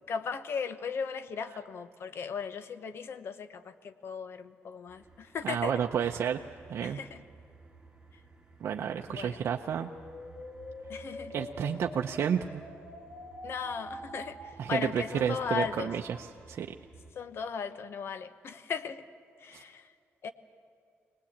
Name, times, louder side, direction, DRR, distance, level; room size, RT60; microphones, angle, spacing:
voice 1, 0.1-5.8 6.8-7.2 9.1-9.4 10.9-11.4 13.4-15.9 17.1-19.0 19.4-19.9 20.2-20.3, left 6 dB, 60° left, 12 dB, 1.0 m, -37 dB
sound 1, 4.9-17.1, right 4 dB, 15° right, 2.5 m, -55 dB
voice 2, 5.4-6.4 6.7-7.0 8.6-9.9 11.3-12.6 14.6-16.7 19.5-19.6, right 8 dB, 65° right, 3 dB, 0.7 m, -31 dB
sound 2, 9.3-16.3, left 1 dB, 30° left, 3.6 m, -46 dB
22.0 x 19.5 x 8.6 m, 2.4 s
cardioid pair, 105°, 5 cm